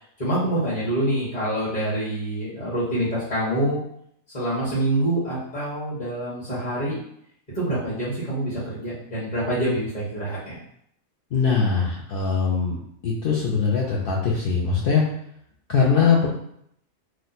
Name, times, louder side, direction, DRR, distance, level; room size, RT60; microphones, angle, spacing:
voice 1, 0.2-3.8 4.3-7.0 7.5-10.6, right 1 dB, 30° left, -10 dB, 1.1 m, -26 dB
voice 2, 11.3-15.0 15.7-16.3, left 5 dB, 70° left, -3 dB, 0.5 m, -21 dB
3.0 x 2.1 x 4.0 m, 0.71 s
omnidirectional pair, 1.5 m